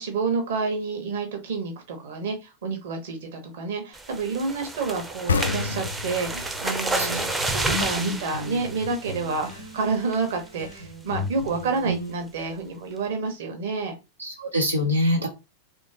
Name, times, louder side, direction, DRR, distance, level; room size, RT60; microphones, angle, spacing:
voice 1, 0.0-13.9, right 4 dB, 55° right, 4 dB, 1.1 m, -29 dB
sound 1, 3.9-9.7 10.1-10.4 10.7-10.8 11.2-11.5, right 2 dB, 10° right, 0.5 m, -31 dB
sound 2, 5.3-8.7, left 6 dB, 70° left, 0.3 m, -30 dB
sound 3, 6.9-12.2, equal, 90° left, 0.8 m, -36 dB
voice 2, 7.6-8.2 14.2-15.3, left 1 dB, 80° right, 0 dB, 0.7 m, -25 dB
3.1 x 2.8 x 2.8 m, 0.27 s
figure-of-eight pair, 90°, 0 cm